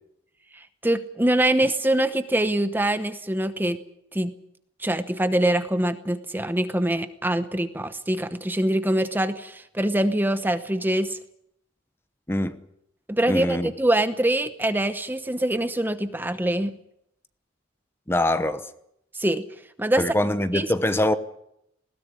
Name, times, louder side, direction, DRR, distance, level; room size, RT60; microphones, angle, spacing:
voice 1, 0.5-3.8 4.1-4.3 4.8-11.2 13.1-16.7 19.1-19.4 19.8-20.0 20.5-20.7, right 1 dB, 10° right, 0.9 m, -24 dB
voice 2, 13.3-13.7 18.1-18.7 20.0-21.2, left 1 dB, 10° left, 1.0 m, -23 dB
20.0 x 17.5 x 9.5 m
head